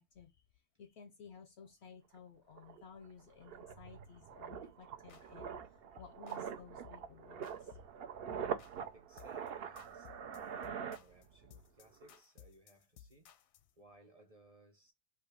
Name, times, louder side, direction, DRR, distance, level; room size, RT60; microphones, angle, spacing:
voice 1, 0.0-7.8, left 6 dB, 65° left, 0.7 m, -56 dB
sound 1, 2.2-2.3 2.6-11.6 11.9-12.1, right 7 dB, 55° right, 0.7 m, -44 dB
sound 2, 4.5-4.7 5.1-5.6 6.0-6.5 6.8-7.1 7.4-8.0 8.3-8.8 9.2-9.5 9.8-13.7, left 9 dB, 80° left, 1.0 m, -59 dB
voice 2, 8.9-13.3 13.8-14.9, right 1 dB, 30° right, 0.9 m, -63 dB
3.6 x 2.8 x 4.7 m
omnidirectional pair, 1.4 m